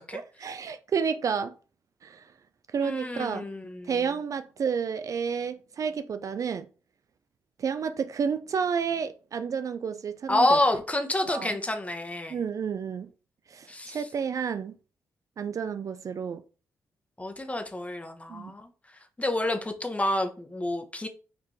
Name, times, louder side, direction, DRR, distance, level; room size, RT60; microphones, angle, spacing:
voice 1, 0.1-1.5 2.0-2.3 2.7-3.4 3.9-6.7 7.6-10.6 11.3-11.6 12.3-13.1 13.5-14.8 15.4-16.4 18.3-18.5, right 6 dB, 50° right, 0.3 m, -30 dB
voice 2, 2.8-3.9 10.3-12.4 13.7-14.1 17.2-18.7 19.2-21.1, left 1 dB, 20° left, 0.9 m, -28 dB
4.3 x 2.5 x 3.1 m
supercardioid pair, 50°, 7 cm